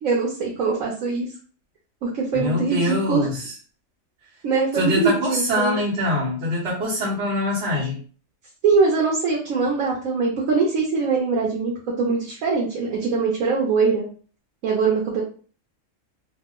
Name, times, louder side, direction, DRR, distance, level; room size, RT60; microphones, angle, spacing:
voice 1, 0.0-1.3 2.0-3.3 4.4-5.8 8.6-14.1 14.6-15.2, right 4 dB, 85° right, -2 dB, 1.2 m, -22 dB
voice 2, 2.3-3.5 4.7-8.0, left 1 dB, 55° right, -7 dB, 1.2 m, -24 dB
2.8 x 2.1 x 3.6 m, 0.40 s
omnidirectional pair, 1.4 m